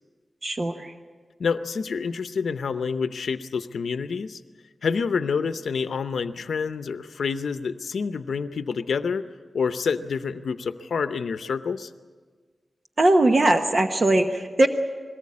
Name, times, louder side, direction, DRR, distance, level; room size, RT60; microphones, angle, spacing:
voice 1, 0.4-0.9 13.0-14.7, right 2 dB, 40° right, 6 dB, 1.1 m, -20 dB
voice 2, 1.4-4.4 4.8-9.2 9.5-11.9, left 5 dB, 90° left, 10 dB, 0.7 m, -28 dB
21.5 x 18.5 x 8.5 m, 1.5 s
wide cardioid pair, 110°, 0 cm